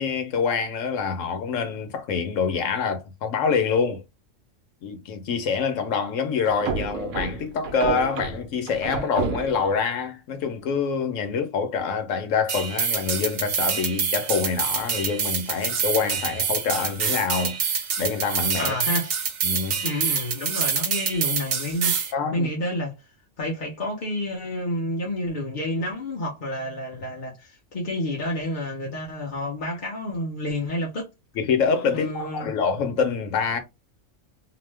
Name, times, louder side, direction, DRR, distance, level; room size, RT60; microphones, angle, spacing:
voice 1, 0.0-4.0 4.8-18.7 19.4-19.8 22.1-22.5 31.4-33.6, left 5 dB, 80° left, 1.1 m, -26 dB
sound 1, 6.4-9.8, right 5 dB, 80° right, 1.0 m, -30 dB
sound 2, 12.5-22.1, right 7 dB, 60° right, 0.8 m, -26 dB
voice 2, 18.6-19.1 19.8-23.0 23.4-31.1 31.9-32.5, left 1 dB, 45° left, 0.8 m, -29 dB
2.9 x 2.1 x 3.2 m
omnidirectional pair, 1.3 m